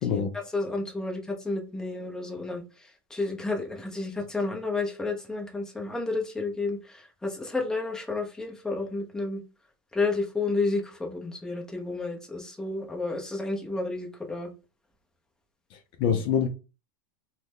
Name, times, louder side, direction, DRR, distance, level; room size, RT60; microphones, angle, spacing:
voice 1, 0.0-0.3 15.7-16.5, left 7 dB, 40° left, 0.4 m, -26 dB
voice 2, 0.5-2.6 3.1-9.4 9.9-14.5 16.0-16.2, left 3 dB, 5° left, 0.7 m, -31 dB
3.7 x 2.1 x 3.0 m
supercardioid pair, 150°, 13 cm